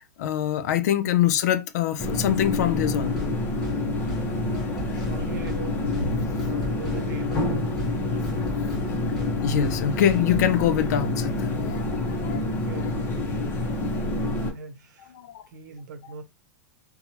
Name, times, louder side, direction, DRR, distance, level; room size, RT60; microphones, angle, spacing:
voice 1, 0.2-3.3 4.3-5.1 9.4-12.6 13.7-14.1 15.1-15.4, left 10 dB, 65° left, 0.4 m, -25 dB
sound 1, 2.0-14.5, left 2 dB, 20° left, 0.8 m, -27 dB
sound 2, 3.1-3.3 3.6-3.8 4.1-4.2 4.5-5.2 5.5-5.6 5.9-6.1 6.4-7.0 7.3-7.5 7.8-7.9 8.2-8.8 9.1-9.3 9.6-9.8 10.1-10.5, right 1 dB, 5° right, 1.3 m, -37 dB
voice 2, 4.9-5.9 6.4-8.1 12.4-12.9 13.9-15.1 15.5-16.2, right 6 dB, 80° right, 0.8 m, -42 dB
2.9 x 2.3 x 2.8 m
supercardioid pair, 145°, 10 cm